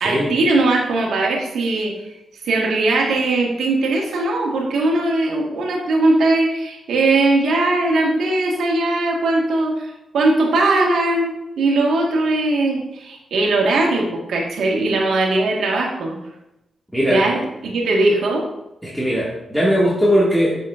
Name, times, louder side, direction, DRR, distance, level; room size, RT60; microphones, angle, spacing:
voice 1, 0.0-1.9 2.4-16.2 17.1-18.5, right 2 dB, 85° right, 0 dB, 1.5 m, -19 dB
voice 2, 16.9-17.4 18.8-20.6, equal, ahead, -7 dB, 1.9 m, -19 dB
7.4 x 6.9 x 2.5 m, 0.90 s
cardioid pair, 75°, 0 cm